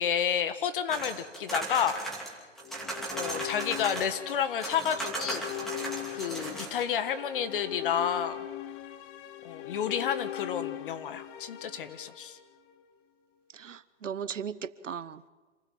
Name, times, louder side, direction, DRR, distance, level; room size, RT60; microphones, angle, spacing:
voice 1, 0.0-2.0 3.1-5.4 6.1-8.4 9.4-12.4, left 8 dB, 45° left, 11 dB, 1.6 m, -30 dB
sound 1, 0.9-4.3 4.6-6.9, right 2 dB, ahead, 2.9 m, -37 dB
sound 2, 2.6-12.8, left 13 dB, 20° left, 0.9 m, -40 dB
voice 2, 13.5-15.3, right 7 dB, 80° right, 16 dB, 1.0 m, -37 dB
27.0 x 15.5 x 7.7 m, 1.3 s
hypercardioid pair, 140°, 37 cm